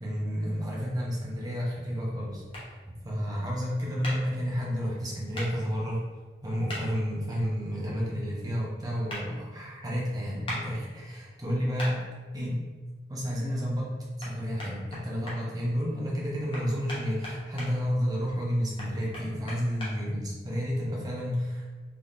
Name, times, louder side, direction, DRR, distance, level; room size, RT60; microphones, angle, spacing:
voice 1, 0.0-2.8 3.0-6.0 6.4-12.0 12.3-12.6 13.1-21.7, equal, 20° right, -5 dB, 0.7 m, -31 dB
sound 1, 2.5-2.7 4.0-4.2 5.3-5.5 6.7-6.8 9.1-9.2 10.5-10.6 11.8-11.9 14.2-14.3 14.6-15.4 16.5-17.7 18.8-19.9, left 1 dB, 30° left, 0.9 m, -37 dB
3.4 x 2.8 x 2.5 m, 1.3 s
head